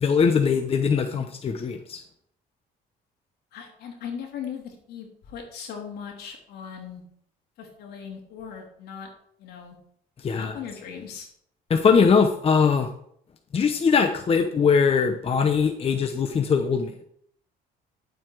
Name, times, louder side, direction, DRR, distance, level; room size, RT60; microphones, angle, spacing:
voice 1, 0.0-2.0 10.2-10.5 11.7-12.9 13.5-16.9, left 5 dB, 35° left, 6 dB, 0.9 m, -21 dB
voice 2, 3.5-7.0 7.6-9.1 9.4-9.8 10.2-11.3, left 7 dB, 75° left, 2 dB, 3.1 m, -38 dB
11.0 x 7.7 x 4.7 m, 0.68 s
cardioid pair, 110°, 17 cm